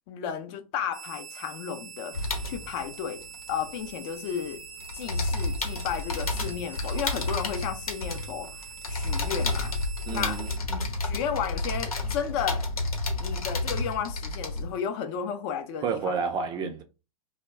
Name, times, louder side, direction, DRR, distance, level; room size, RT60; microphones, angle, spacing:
voice 1, 0.1-3.2 3.5-4.6 4.9-9.7 10.1-10.4 11.0-12.7 13.2-16.2, left 8 dB, 45° left, 0.5 m, -33 dB
sound 1, 0.9-10.6, right 7 dB, 85° right, 0.5 m, -44 dB
sound 2, 2.1-4.4 4.6-14.8, left 2 dB, 85° left, 0.8 m, -31 dB
voice 2, 10.1-10.9 15.8-16.8, right 5 dB, 25° right, 0.4 m, -31 dB
2.1 x 2.1 x 3.5 m
hypercardioid pair, 105°, 18 cm